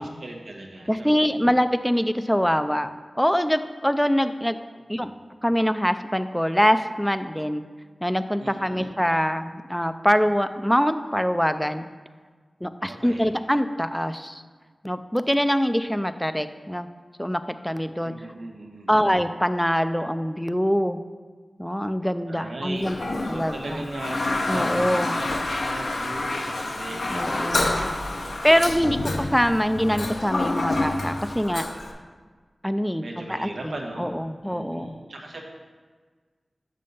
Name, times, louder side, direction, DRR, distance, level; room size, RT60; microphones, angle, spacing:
voice 1, 0.0-1.1 4.9-5.1 8.4-8.9 12.9-13.3 18.0-19.1 22.3-27.5 27.7-28.4 33.0-34.1 34.4-35.4, right 2 dB, 85° right, 0 dB, 1.1 m, -38 dB
voice 2, 0.9-2.9 3.2-4.6 4.9-5.1 5.4-7.6 8.0-11.9 12.6-14.4 14.8-16.9 17.2-18.1 18.9-21.0 21.6-23.0 23.3-23.8 24.5-25.2 27.1-27.8 28.4-31.7 32.6-35.0, equal, 5° left, 10 dB, 0.4 m, -24 dB
Toilet flush, 22.8-31.9, left 2 dB, 80° left, 0.7 m, -28 dB
6.6 x 5.3 x 5.4 m, 1.5 s
wide cardioid pair, 50°, 0 cm